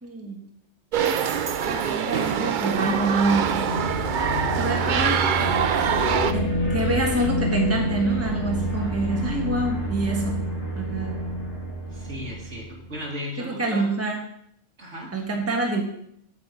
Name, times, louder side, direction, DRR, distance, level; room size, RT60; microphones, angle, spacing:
voice 1, 0.0-0.4 1.0-1.2 1.7-3.7 4.6-5.2 6.3-10.4 10.8-11.1 13.4-14.2 15.1-15.8, right 2 dB, 15° right, 0 dB, 1.4 m, -26 dB
sound 1, 0.9-6.3, right 8 dB, 55° right, 0.6 m, -24 dB
sound 2, 2.7-12.9, equal, 20° left, 2.4 m, -28 dB
voice 2, 4.0-5.5 11.9-13.9 14.8-15.1, left 1 dB, 75° right, -2 dB, 2.6 m, -36 dB
8.3 x 4.8 x 7.5 m, 0.71 s
omnidirectional pair, 1.2 m